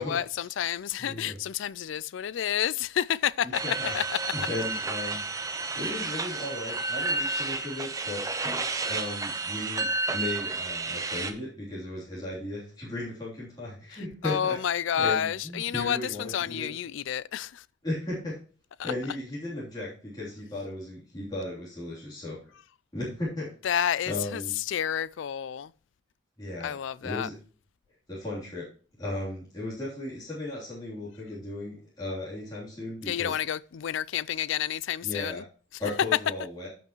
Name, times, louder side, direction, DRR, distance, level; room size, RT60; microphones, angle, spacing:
voice 1, 0.0-4.2 14.2-17.7 18.8-18.9 23.6-25.7 26.6-27.3 33.1-35.4, left 9 dB, 65° left, 0.3 m, -30 dB
voice 2, 1.0-1.3 3.6-3.9 4.3-8.2 8.9-14.6 15.0-16.7 17.8-18.4 18.8-22.4 22.9-23.5 24.1-24.5 26.4-26.7 27.0-27.3 28.1-28.7 29.0-33.4 35.0-35.4 35.8-36.7, left 2 dB, 20° left, 3.1 m, -36 dB
sound 1, 3.5-11.3, right 3 dB, 15° right, 0.8 m, -31 dB
15.0 x 5.8 x 3.0 m
head